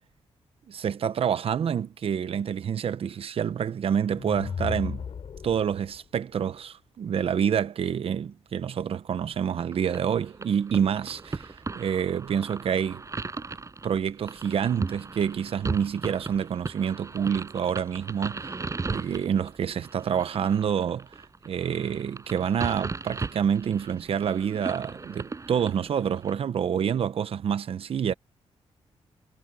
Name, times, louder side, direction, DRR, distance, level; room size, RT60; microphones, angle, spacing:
voice 1, 0.7-5.0 5.4-13.0 13.8-18.5 18.9-28.1, right 8 dB, 60° right, 0.8 m, -27 dB
sound 1, 4.1-6.0, left 7 dB, 55° left, 5.1 m, -35 dB
sound 2, 9.6-26.3, right 4 dB, 30° right, 7.3 m, -37 dB
wide cardioid pair, 125°, 11 cm